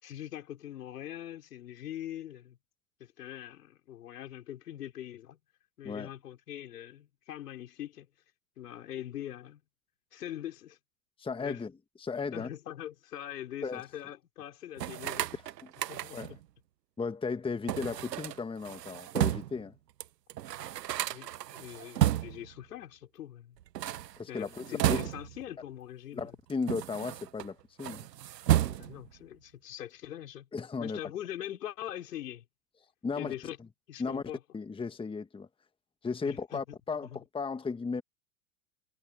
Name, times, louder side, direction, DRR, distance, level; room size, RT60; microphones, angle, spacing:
voice 1, 0.0-2.6 3.0-5.4 5.8-8.1 8.6-9.6 10.1-10.8 11.4-11.6 12.3-15.3 15.9-16.4 21.0-23.6 24.3-26.3 28.7-30.5 30.8-32.4 33.2-33.6 33.9-34.4 36.2-36.8 37.0-37.2, left 11 dB, 75° left, 4.9 m, -42 dB
voice 2, 11.2-11.7 12.0-12.5 13.6-13.8 15.3-15.7 16.1-16.4 17.0-19.7 24.2-25.1 26.1-28.1 30.5-31.0 33.0-33.3 34.0-34.2 34.5-35.5 36.0-38.0, left 4 dB, 10° left, 1.4 m, -35 dB
sound 1, 14.8-16.4 17.7-19.6 20.0-20.1 20.3-22.5 23.6-25.5 26.2-27.5 27.8-29.1, right 12 dB, 80° right, 0.8 m, -32 dB
hypercardioid pair, 100°, 48 cm